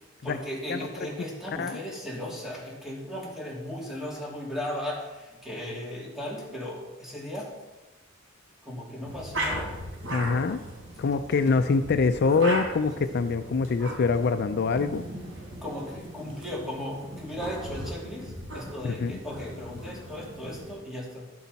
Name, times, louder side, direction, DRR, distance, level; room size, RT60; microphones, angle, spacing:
voice 1, 0.2-7.6 8.6-9.7 12.3-12.5 15.6-21.3, left 1 dB, ahead, -4 dB, 2.7 m, -36 dB
sound 1, 9.0-20.8, right 1 dB, 75° right, 3.8 m, -38 dB
voice 2, 10.1-10.6 11.0-15.0 18.8-19.1, left 4 dB, 55° left, 9 dB, 0.4 m, -24 dB
11.5 x 8.5 x 4.1 m, 1.1 s
head